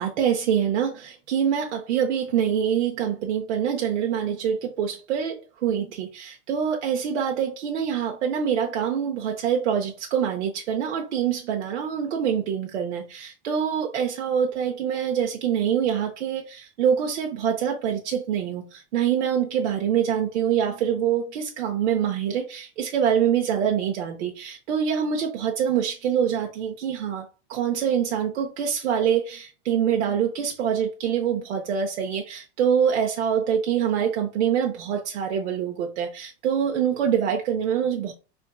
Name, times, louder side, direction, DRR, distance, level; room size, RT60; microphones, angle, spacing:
voice 1, 0.0-38.1, right 8 dB, 85° right, 0.8 m, -25 dB
4.0 x 3.5 x 2.3 m
supercardioid pair, 140°, 34 cm